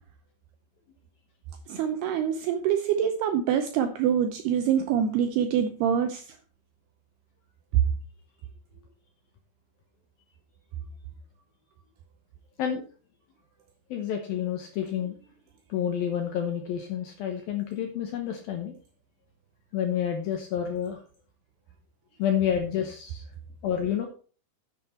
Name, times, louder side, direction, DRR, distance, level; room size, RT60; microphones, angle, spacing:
voice 1, 1.7-6.3, right 8 dB, 85° right, 7 dB, 2.3 m, -25 dB
voice 2, 13.9-15.2 15.7-18.7 19.7-21.0 22.2-23.2 23.6-24.1, left 9 dB, 75° left, 4 dB, 2.2 m, -29 dB
10.0 x 8.0 x 4.4 m, 0.39 s
omnidirectional pair, 5.4 m